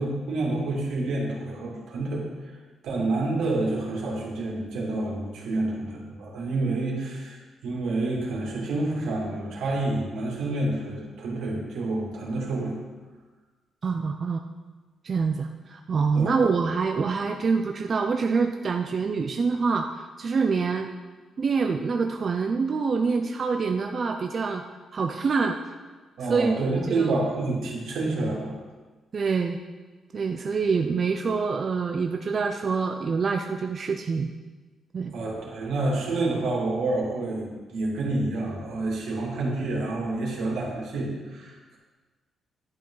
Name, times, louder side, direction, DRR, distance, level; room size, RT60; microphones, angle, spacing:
voice 1, 0.0-2.3 2.8-7.4 7.6-12.8 16.1-16.3 26.2-28.6 35.1-41.8, right 2 dB, 80° right, -3 dB, 2.6 m, -28 dB
voice 2, 13.8-14.4 15.0-20.9 21.4-24.6 24.9-25.6 26.3-26.6 26.9-27.1 29.1-29.6 30.1-34.3 34.9-35.1, right 5 dB, 30° right, 4 dB, 0.4 m, -26 dB
11.5 x 8.6 x 3.9 m, 1.3 s
cardioid pair, 175°, 0 cm